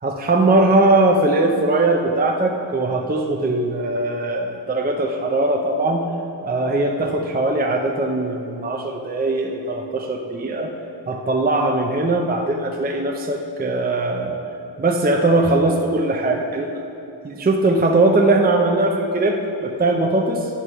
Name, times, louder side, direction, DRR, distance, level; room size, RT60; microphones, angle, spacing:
voice 1, 0.0-6.0 6.4-10.7 11.1-14.4 14.8-16.8 17.2-20.5, right 2 dB, 20° right, 1 dB, 0.5 m, -20 dB
9.7 x 4.7 x 5.6 m, 2.7 s
wide cardioid pair, 120°, 45 cm